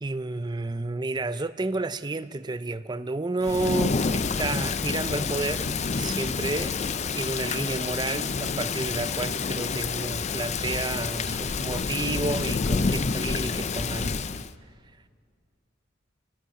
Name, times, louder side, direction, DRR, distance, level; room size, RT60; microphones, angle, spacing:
voice 1, 0.0-6.7 7.1-14.2, right 2 dB, 20° right, 0.5 m, -31 dB
Thunder / Rain, 3.4-14.5, left 4 dB, 35° left, 0.5 m, -28 dB
28.0 x 18.0 x 5.8 m
head